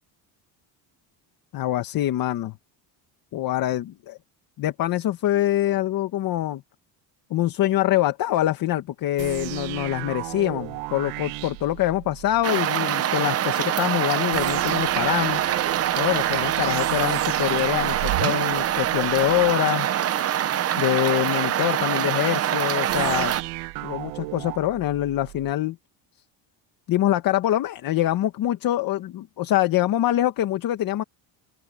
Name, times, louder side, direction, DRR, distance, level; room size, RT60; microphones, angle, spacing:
voice 1, 1.5-2.6 3.3-4.2 4.6-6.6 7.3-15.4 15.9-19.9 20.8-23.3 23.8-25.8 26.9-31.0, left 14 dB, 50° left, 1.7 m, -24 dB
sound 1, 9.2-12.5 14.3-19.5 22.9-25.5, right 21 dB, 90° right, 1.2 m, -34 dB
sound 2, 12.4-23.4, right 11 dB, 35° right, 0.8 m, -24 dB
cardioid pair, 150°, 45 cm